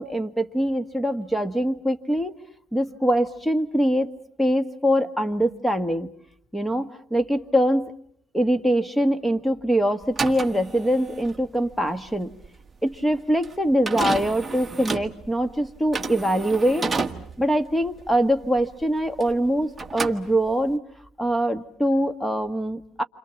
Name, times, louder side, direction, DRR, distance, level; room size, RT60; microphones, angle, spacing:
voice 1, 0.0-2.3 2.7-4.1 4.4-6.1 6.5-7.9 8.3-12.3 12.8-16.9 17.4-20.8 21.2-23.0, equal, 5° left, 12 dB, 1.5 m, -23 dB
sound 1, 10.0-19.5 19.7-20.8, right 4 dB, 20° right, 1.5 m, -31 dB
29.5 x 26.0 x 7.1 m, 0.65 s
cardioid pair, 110°, 0 cm